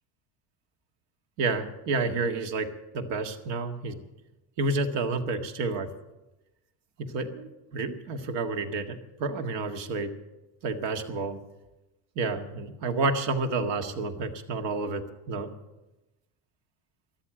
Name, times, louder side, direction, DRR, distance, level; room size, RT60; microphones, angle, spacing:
voice 1, 1.4-2.7 2.9-4.0 4.6-5.9 7.1-10.1 10.6-11.4 12.2-15.5, right 3 dB, 75° right, 6 dB, 1.8 m, -30 dB
14.0 x 12.0 x 7.7 m, 1.0 s
cardioid pair, 135°, 42 cm